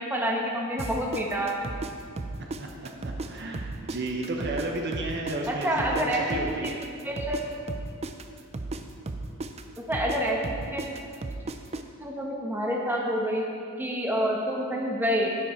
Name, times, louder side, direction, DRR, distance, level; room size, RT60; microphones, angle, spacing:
voice 1, 0.0-1.5 5.5-6.7 7.0-7.5 9.8-10.9 12.0-13.5 13.8-15.4, equal, 10° right, -2 dB, 1.2 m, -28 dB
sound 1, 0.8-3.3 3.5-7.4 7.7-11.8, right 2 dB, 30° right, 0.5 m, -35 dB
voice 2, 3.0-6.8, right 2 dB, 50° right, 1 dB, 1.0 m, -33 dB
10.0 x 9.7 x 4.5 m, 2.3 s
head